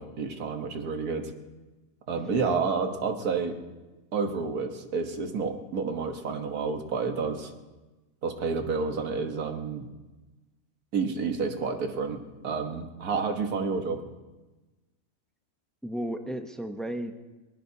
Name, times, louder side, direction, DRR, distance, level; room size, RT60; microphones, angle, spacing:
voice 1, 0.0-1.3 2.1-3.6 4.1-7.5 8.2-9.9 10.9-14.0, right 5 dB, 80° right, 5 dB, 1.8 m, -30 dB
voice 2, 2.3-2.6 15.8-17.1, right 1 dB, ahead, 5 dB, 0.5 m, -34 dB
23.0 x 20.0 x 2.8 m, 1.2 s
omnidirectional pair, 1.6 m